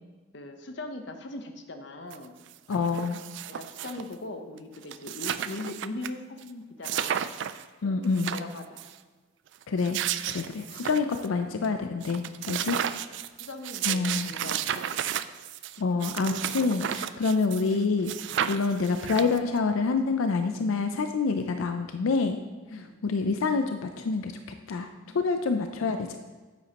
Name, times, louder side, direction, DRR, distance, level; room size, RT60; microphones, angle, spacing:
voice 1, 0.3-2.4 3.5-7.1 7.8-8.0 8.3-8.8 12.8-12.9 13.4-15.1 22.7-22.9 25.1-25.3, left 2 dB, 60° left, 6 dB, 0.7 m, -40 dB
sound 1, 2.1-2.2 2.5-4.1 4.6-4.7 4.8-6.1 6.4-6.5 6.8-7.6 8.0-8.9 9.6-11.3 11.6-11.7 12.0-17.8 18.1-19.6, right 10 dB, 65° right, 0.3 m, -33 dB
voice 2, 2.7-3.2 7.8-8.3 9.7-10.0 10.3-12.8 13.9-14.3 15.8-22.4 23.0-24.3 24.7-24.9 25.1-26.2, left 4 dB, 90° left, 7 dB, 0.5 m, -27 dB
9.2 x 8.1 x 2.9 m, 1.3 s
head